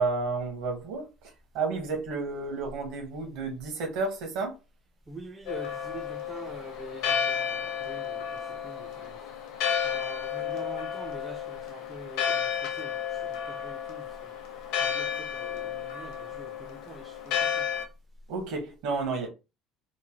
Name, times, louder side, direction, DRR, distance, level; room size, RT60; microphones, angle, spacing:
voice 1, 0.0-4.5 17.7-17.8 18.3-19.3, right 4 dB, 65° right, 1.0 m, -31 dB
voice 2, 5.1-9.2 9.8-14.3 14.8-17.7, right 2 dB, 15° right, 0.3 m, -45 dB
Church bell, 5.5-17.8, left 8 dB, 65° left, 0.6 m, -32 dB
3.0 x 2.1 x 2.7 m
cardioid pair, 180°, 0 cm